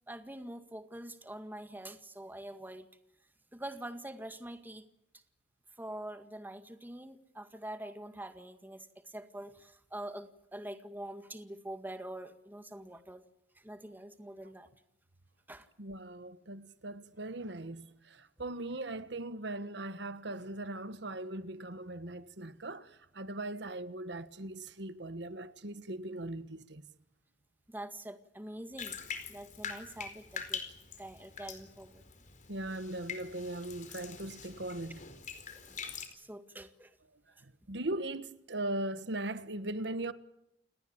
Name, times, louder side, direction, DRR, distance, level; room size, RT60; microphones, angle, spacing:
voice 1, 0.1-2.9 3.5-4.8 5.8-13.2 13.6-14.7 15.5-15.7 27.7-29.0 29.3-30.6 31.0-32.0 35.5-36.9, right 1 dB, 10° right, 1.9 m, -45 dB
voice 2, 15.8-26.8 32.5-35.0 37.4-40.1, right 1 dB, 70° right, 1.5 m, -39 dB
Bathtub (filling or washing), 28.8-36.1, left 6 dB, 45° left, 4.4 m, -44 dB
30.0 x 18.5 x 8.8 m
head